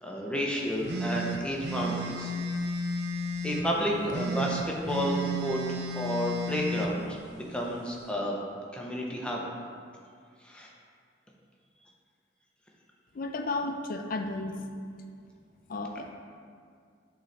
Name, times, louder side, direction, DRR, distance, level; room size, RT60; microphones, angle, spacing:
voice 1, 0.0-2.3 3.4-8.4 8.7-9.4 10.4-10.7, equal, 5° left, -2 dB, 0.7 m, -31 dB
sound 1, 0.9-3.7 4.1-6.9, right 1 dB, 60° right, 0.4 m, -32 dB
voice 2, 13.1-14.6 15.7-16.1, left 2 dB, 50° left, 5 dB, 0.5 m, -33 dB
7.9 x 3.9 x 3.3 m, 2.2 s
head